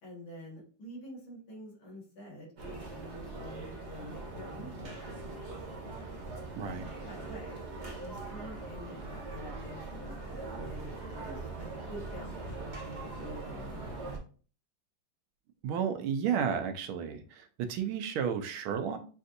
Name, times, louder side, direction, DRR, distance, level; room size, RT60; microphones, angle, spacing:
voice 1, 0.0-5.0 6.6-6.8 7.0-7.6 7.9-14.1, left 1 dB, 75° left, -2 dB, 2.4 m, -48 dB
sound 1, 2.6-14.2, right 3 dB, 45° right, 1.0 m, -41 dB
voice 2, 15.6-19.0, right 7 dB, 85° right, 7 dB, 1.5 m, -32 dB
6.6 x 2.6 x 2.5 m, 0.39 s
omnidirectional pair, 2.2 m